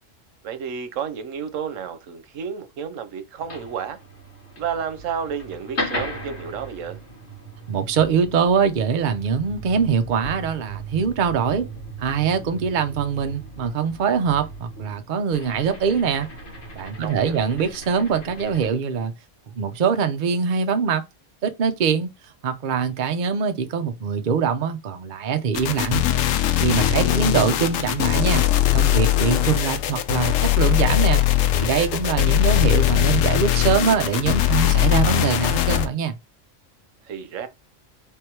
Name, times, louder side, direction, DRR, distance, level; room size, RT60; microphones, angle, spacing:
voice 1, 0.4-4.0 4.6-7.0 17.0-17.4 26.8-27.2 37.0-37.5, right 7 dB, 85° right, 1.1 m, -31 dB
sound 1, 3.4-18.7, right 1 dB, 60° left, 1.6 m, -37 dB
voice 2, 7.7-11.7 12.0-16.3 16.7-19.1 19.5-21.0 21.4-22.1 22.4-26.0 26.6-28.4 28.7-31.2 31.5-36.2, right 6 dB, 50° right, 0.7 m, -23 dB
sound 2, 25.5-35.9, left 13 dB, 85° left, 1.0 m, -20 dB
3.5 x 3.1 x 4.6 m
omnidirectional pair, 1.3 m